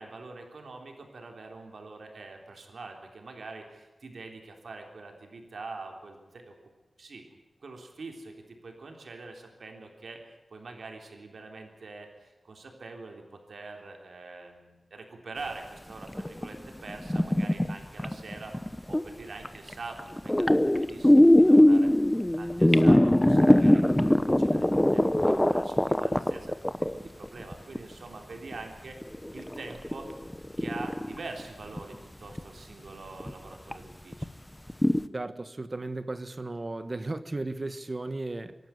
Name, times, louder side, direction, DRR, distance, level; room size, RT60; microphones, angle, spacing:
voice 1, 0.0-6.5 7.0-7.3 7.6-10.2 10.5-18.6 18.9-29.0 29.3-30.1 30.6-34.3, right 3 dB, 85° right, 3.5 m, -44 dB
sound 1, 16.0-19.0 19.4-19.7 20.0-27.9 28.5-28.6 29.0-31.4 31.8-32.0 32.4-32.5 33.2-33.3 33.7-33.8 34.1-34.2 34.7-35.0, left 1 dB, 10° left, 1.0 m, -22 dB
voice 2, 35.1-38.6, right 2 dB, 40° right, 1.4 m, -35 dB
26.5 x 12.0 x 9.8 m
wide cardioid pair, 85°, 0 cm